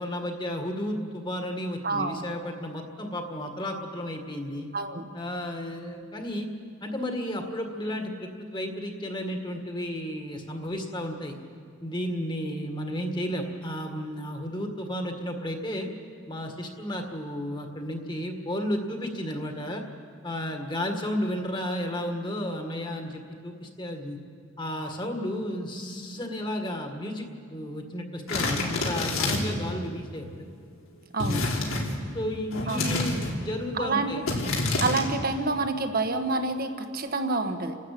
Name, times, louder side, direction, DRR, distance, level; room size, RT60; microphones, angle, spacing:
voice 1, 0.0-4.7 5.1-6.5 6.8-11.4 11.8-15.9 16.3-19.8 20.2-24.2 24.6-30.5 31.2-31.5 32.1-34.3, equal, 20° left, 4 dB, 1.8 m, -33 dB
voice 2, 1.8-2.2 4.7-5.1 31.1-31.5 32.7-32.8 33.7-34.1 34.8-37.8, right 3 dB, 45° right, 7 dB, 1.4 m, -28 dB
sound 1, 28.3-29.6 31.2-32.0 32.5-33.4 34.3-35.0, left 2 dB, 85° left, 3.6 m, -28 dB
30.0 x 13.0 x 8.5 m, 2.2 s
head